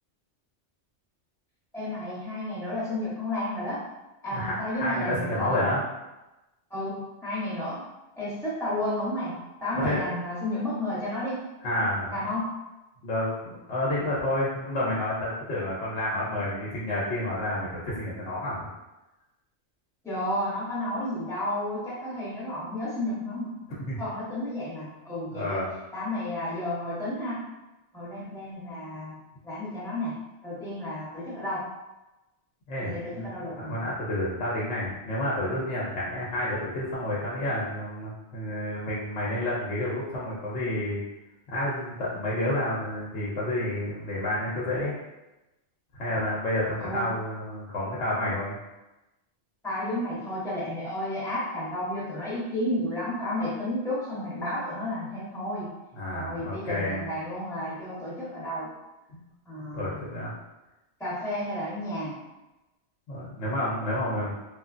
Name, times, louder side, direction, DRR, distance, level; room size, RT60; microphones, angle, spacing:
voice 1, 1.7-3.8 4.2-5.7 6.7-7.8 8.2-11.4 12.1-12.5 20.0-23.6 24.0-25.7 25.9-27.4 27.9-29.2 29.4-31.7 32.8-33.7 46.8-47.1 49.6-55.7 56.1-58.7 59.5-60.0 61.0-62.2, left 1 dB, 5° left, -8 dB, 0.7 m, -32 dB
voice 2, 4.3-5.8 9.7-10.1 11.6-12.1 13.0-18.7 23.9-24.0 25.3-25.7 32.7-41.0 41.5-44.9 45.9-48.5 55.9-57.0 59.1-59.3 59.5-60.3 63.1-64.3, left 1 dB, 75° left, -6 dB, 0.9 m, -30 dB
3.2 x 2.1 x 2.4 m, 1.0 s
omnidirectional pair, 1.2 m